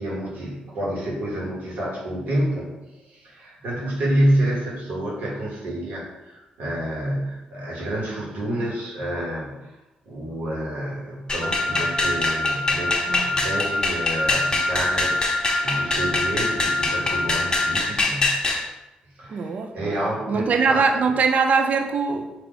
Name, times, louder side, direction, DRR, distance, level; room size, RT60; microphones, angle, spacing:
voice 1, 0.0-2.7 3.0-9.7 10.0-18.4 19.2-20.9, right 1 dB, 80° right, -5 dB, 1.5 m, -28 dB
sound 1, 11.3-18.6, left 3 dB, 30° left, 0.8 m, -24 dB
Wind instrument woodwind instrument, 11.4-17.9, left 1 dB, 5° left, 0.4 m, -27 dB
voice 2, 19.3-20.0 20.3-22.3, right 5 dB, 55° right, 5 dB, 0.4 m, -22 dB
3.8 x 2.8 x 3.9 m, 1.0 s
cardioid pair, 75°, 3 cm